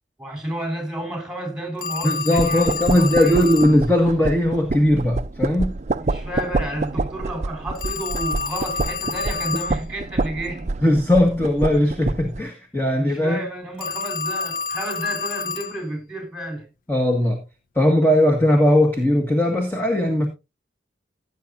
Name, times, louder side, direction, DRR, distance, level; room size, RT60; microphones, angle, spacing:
voice 1, 0.2-3.5 6.1-10.7 13.0-16.7, right 1 dB, 5° right, 4.2 m, -31 dB
Telephone, 1.8-3.8 7.8-9.8 13.8-15.8, left 5 dB, 50° left, 0.7 m, -29 dB
voice 2, 2.0-5.7 10.8-13.4 16.9-17.4 17.7-20.3, left 1 dB, 10° left, 1.7 m, -19 dB
sound 1, 2.4-12.4, right 3 dB, 40° right, 0.5 m, -27 dB
16.5 x 8.4 x 2.6 m
head